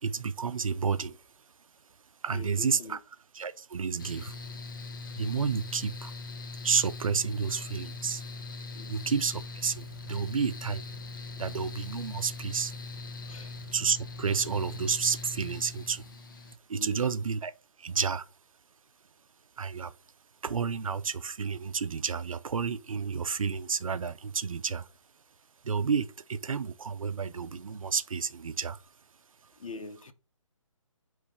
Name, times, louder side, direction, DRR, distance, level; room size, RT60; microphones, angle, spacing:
voice 1, 0.0-1.2 2.2-3.0 3.3-4.4 5.2-6.1 6.6-8.2 8.9-10.8 11.4-12.7 13.7-16.0 16.7-17.5 17.8-18.3 19.6-19.9 20.4-24.9 25.6-28.8, right 6 dB, 85° right, 0.5 m, -30 dB
voice 2, 2.3-3.0 8.7-9.0 13.2-13.6 16.7-17.1 29.6-30.1, left 3 dB, 75° left, 0.8 m, -43 dB
Mechanical fan, 4.0-16.5, left 3 dB, 40° left, 0.5 m, -41 dB
3.4 x 3.2 x 4.1 m
hypercardioid pair, 160°, 17 cm